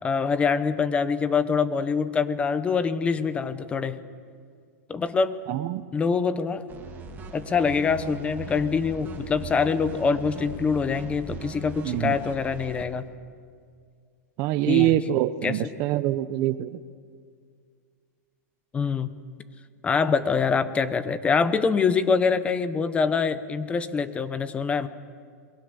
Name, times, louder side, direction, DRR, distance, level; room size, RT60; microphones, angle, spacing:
voice 1, 0.0-4.0 4.9-5.3 5.9-6.6 7.3-13.1 14.7-15.0 15.4-15.5 18.7-19.1 19.8-24.9, left 5 dB, 15° left, 13 dB, 0.8 m, -24 dB
voice 2, 5.5-5.8 11.8-12.2 14.4-16.8, right 14 dB, 35° right, 15 dB, 0.7 m, -24 dB
sound 1, 6.7-12.8, right 4 dB, 20° right, 2.7 m, -39 dB
28.0 x 22.5 x 7.0 m, 2.1 s
supercardioid pair, 155°, 9 cm